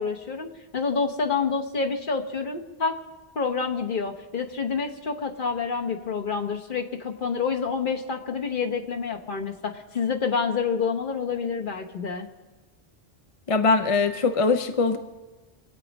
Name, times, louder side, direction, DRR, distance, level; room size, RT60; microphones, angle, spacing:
voice 1, 0.0-3.0 3.3-12.3, left 5 dB, 55° left, 3 dB, 1.2 m, -28 dB
voice 2, 13.5-15.0, left 4 dB, 40° left, 8 dB, 0.6 m, -21 dB
23.5 x 8.3 x 5.3 m, 1.2 s
omnidirectional pair, 1.0 m